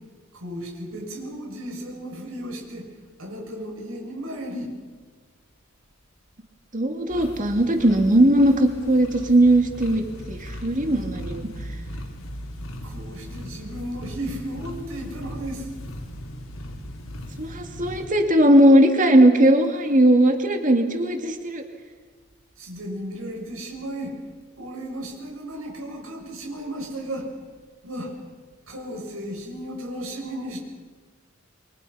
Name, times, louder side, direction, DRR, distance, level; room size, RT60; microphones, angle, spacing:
voice 1, 0.4-2.9 3.2-4.7 12.8-15.7 22.6-24.2 24.5-27.3 27.8-28.1 28.7-30.6, right 1 dB, 90° right, 0 dB, 7.1 m, -34 dB
voice 2, 6.7-10.0 10.3-11.5 17.4-21.6, right 1 dB, 40° right, 4 dB, 2.6 m, -18 dB
sound 1, 7.1-18.1, equal, 85° left, 4.0 m, -38 dB
28.5 x 24.5 x 5.9 m, 1.4 s
head